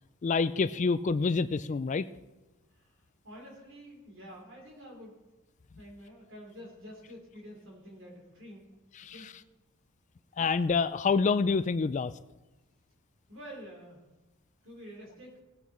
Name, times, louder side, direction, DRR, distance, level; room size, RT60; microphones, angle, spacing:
voice 1, 0.2-2.1 9.0-9.1 10.4-12.1, left 4 dB, 35° left, 14 dB, 0.3 m, -27 dB
voice 2, 3.2-5.1 5.8-8.6 9.1-9.3 13.3-14.0 14.6-15.4, equal, 60° right, 0 dB, 4.1 m, -48 dB
18.5 x 8.4 x 4.3 m, 1.1 s
head